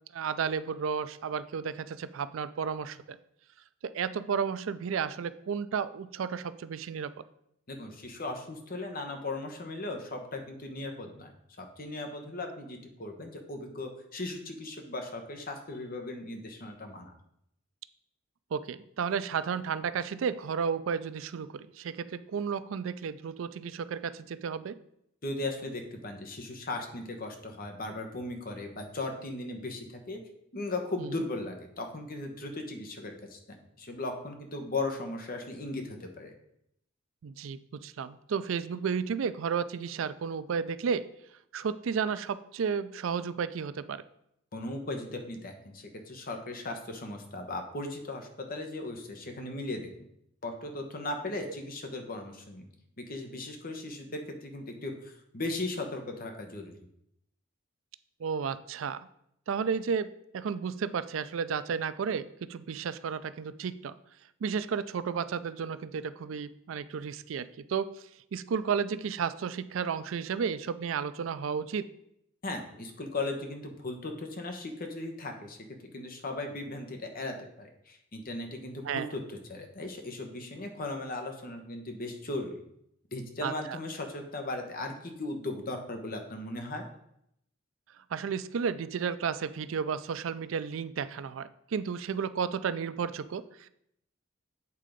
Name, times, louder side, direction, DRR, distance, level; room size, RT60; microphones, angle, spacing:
voice 1, 0.1-3.2 3.8-7.1 18.5-24.8 31.0-31.2 37.2-41.0 41.5-44.0 51.5-51.6 58.2-59.0 59.5-60.1 60.3-63.9 64.4-67.9 68.3-71.9 78.8-79.1 83.4-83.8 88.1-93.7, right 6 dB, 85° right, 14 dB, 0.4 m, -33 dB
voice 2, 7.7-11.3 11.6-17.1 25.2-30.2 30.5-36.3 44.5-49.9 50.4-52.7 53.0-56.9 72.4-75.6 75.9-82.6 83.1-86.8, left 2 dB, 50° left, 4 dB, 1.1 m, -37 dB
8.4 x 3.7 x 5.1 m, 0.75 s
head